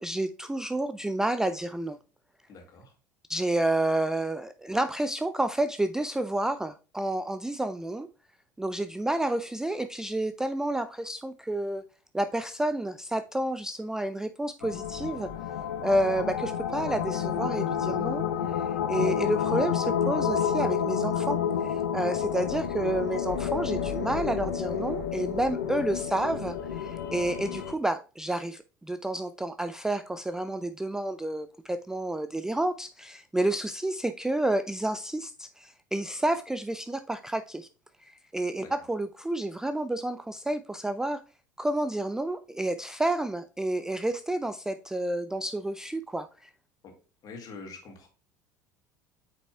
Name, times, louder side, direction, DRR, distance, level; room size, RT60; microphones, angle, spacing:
voice 1, 0.0-2.0 3.3-8.1 8.6-11.8 12.1-15.3 15.8-18.3 18.5-21.4 21.6-37.7 38.0-41.2 41.6-46.5, right 1 dB, 5° right, 0.3 m, -30 dB
voice 2, 2.5-2.9 38.6-38.7 46.8-46.9 47.2-48.1, left 4 dB, 40° left, 2.0 m, -45 dB
sound 1, 14.6-27.7, left 8 dB, 70° left, 0.7 m, -30 dB
8.5 x 5.1 x 2.3 m
figure-of-eight pair, 70°, 10 cm